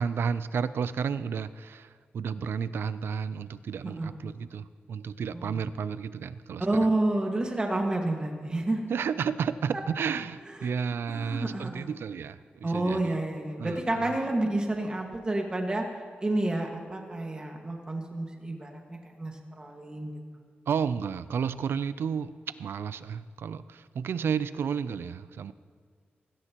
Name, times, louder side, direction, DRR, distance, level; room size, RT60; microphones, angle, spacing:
voice 1, 0.0-6.7 8.9-13.2 13.6-14.1 20.7-25.5, right 6 dB, 85° right, 14 dB, 0.4 m, -32 dB
voice 2, 5.3-5.6 6.6-8.8 10.6-10.7 11.1-11.9 12.6-15.9 16.2-20.1, right 2 dB, 25° right, 1 dB, 1.7 m, -29 dB
17.0 x 16.5 x 3.0 m, 2.1 s
wide cardioid pair, 140°, 4 cm